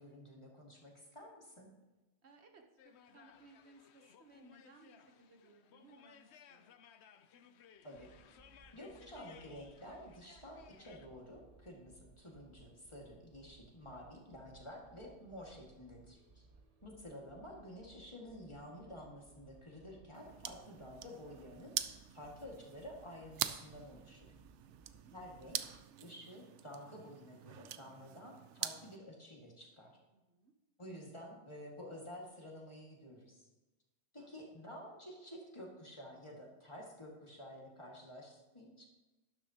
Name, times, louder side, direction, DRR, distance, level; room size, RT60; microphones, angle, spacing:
voice 1, 0.0-1.7 7.8-8.1 8.7-16.4 16.8-24.3 25.1-25.6 26.0-30.0 30.8-33.5 34.1-38.8, equal, 25° left, -1 dB, 2.0 m, -51 dB
voice 2, 2.2-6.7 24.5-25.2 30.1-30.5 34.2-34.3, right 3 dB, 65° right, 3 dB, 1.2 m, -63 dB
sound 1, 2.8-11.1, left 8 dB, 70° left, 0.9 m, -62 dB
sound 2, 7.9-25.8, right 3 dB, 40° right, 0.7 m, -64 dB
sound 3, 20.1-29.0, right 10 dB, 80° right, 0.9 m, -45 dB
12.0 x 11.0 x 2.9 m, 1.1 s
omnidirectional pair, 1.2 m